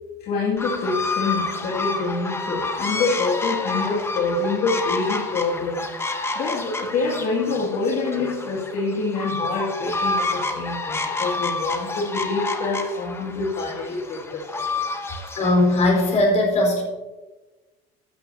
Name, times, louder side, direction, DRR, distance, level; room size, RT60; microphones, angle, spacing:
voice 1, 0.2-5.9 6.4-14.6, left 3 dB, 55° left, -6 dB, 2.4 m, -26 dB
sound 1, 0.6-16.2, left 3 dB, 15° left, 1.0 m, -29 dB
voice 2, 15.4-16.8, left 2 dB, 40° left, 0 dB, 4.5 m, -19 dB
15.0 x 12.0 x 2.8 m, 1.2 s
cardioid pair, 140°, 19 cm